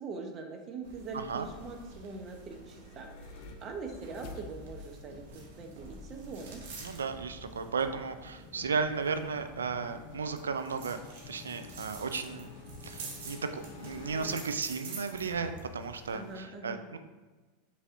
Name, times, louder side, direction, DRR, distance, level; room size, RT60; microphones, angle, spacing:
voice 1, 0.0-6.7 16.1-16.8, right 4 dB, 35° right, 4 dB, 0.7 m, -43 dB
sound 1, 0.8-16.4, right 3 dB, 70° right, 0.9 m, -49 dB
voice 2, 1.1-1.5 6.8-11.0 11.3-12.5 12.8-17.0, right 5 dB, 90° right, 9 dB, 0.3 m, -34 dB
sound 2, 2.4-14.5, left 5 dB, 60° left, 0.5 m, -50 dB
5.3 x 3.2 x 2.6 m, 1.3 s
hypercardioid pair, 95°, 0 cm